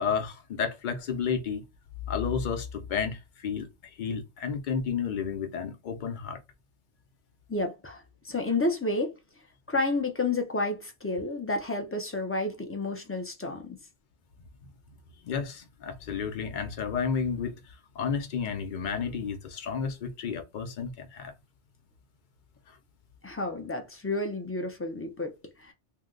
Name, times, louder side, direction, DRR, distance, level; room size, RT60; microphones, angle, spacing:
voice 1, 0.0-1.6 2.1-6.4 14.6-14.7 15.2-21.3 22.7-22.8, left 6 dB, 50° left, 0.7 m, -32 dB
voice 2, 7.5-9.1 9.7-13.8 23.2-25.7, left 2 dB, 20° left, 0.3 m, -30 dB
2.8 x 2.1 x 3.7 m
omnidirectional pair, 1.2 m